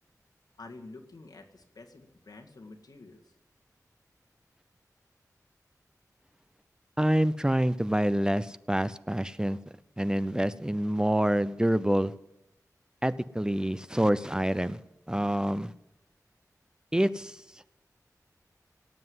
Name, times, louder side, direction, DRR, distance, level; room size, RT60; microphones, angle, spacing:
voice 1, 0.6-3.3, left 3 dB, 80° left, 2 dB, 2.0 m, -49 dB
voice 2, 7.0-9.6 10.0-12.1 13.0-14.8 15.1-15.7 16.9-17.4, right 1 dB, 10° right, 14 dB, 0.6 m, -27 dB
18.0 x 7.8 x 9.5 m, 0.85 s
wide cardioid pair, 65°, 6 cm